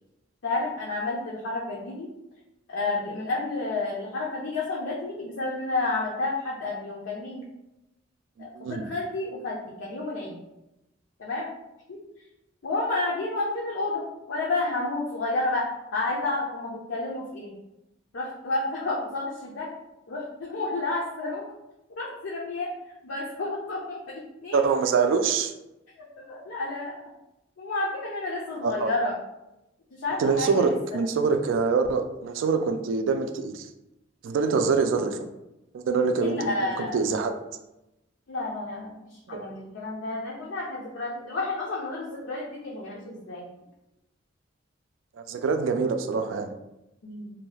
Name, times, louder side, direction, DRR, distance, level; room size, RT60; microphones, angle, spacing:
voice 1, 0.4-2.1 2.7-7.5 8.4-10.4 11.2-11.5 11.9-12.0 12.6-17.5 18.1-19.7 20.1-21.5 22.0-22.7 23.0-24.6 26.0-27.0 27.6-29.1 29.9-30.7 36.2-37.0 38.3-43.5 47.0-47.3, left 2 dB, 75° left, -4 dB, 0.5 m, -30 dB
voice 2, 8.4-8.8 24.5-25.5 28.6-28.9 30.2-33.6 34.2-35.2 35.7-37.4 39.3-39.5 45.3-46.5, right 5 dB, 75° right, 7 dB, 0.3 m, -25 dB
2.7 x 2.2 x 3.1 m, 0.93 s
head